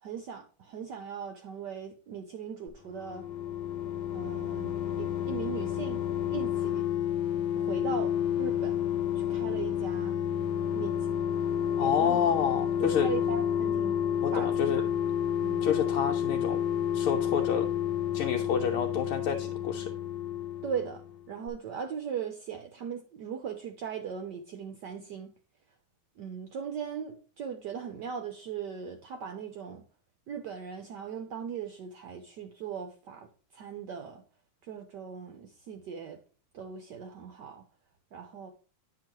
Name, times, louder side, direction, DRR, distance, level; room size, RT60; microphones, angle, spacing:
voice 1, 0.0-3.3 4.1-6.0 6.3-6.9 7.5-8.8 9.1-10.2 10.7-11.0 11.8-12.2 12.8-14.0 14.3-14.5 15.4-15.6 20.6-25.3 26.2-29.8 30.3-34.2 34.6-36.2 36.5-37.6 38.1-38.5, right 7 dB, 65° right, 1.1 m, -39 dB
sound 1, 2.7-21.2 21.5-21.6, left 9 dB, 60° left, 1.1 m, -30 dB
voice 2, 11.8-13.1 14.2-14.8 15.6-16.6 16.9-17.7 18.1-19.9, left 7 dB, 80° left, 1.6 m, -29 dB
10.5 x 6.0 x 3.0 m
omnidirectional pair, 2.4 m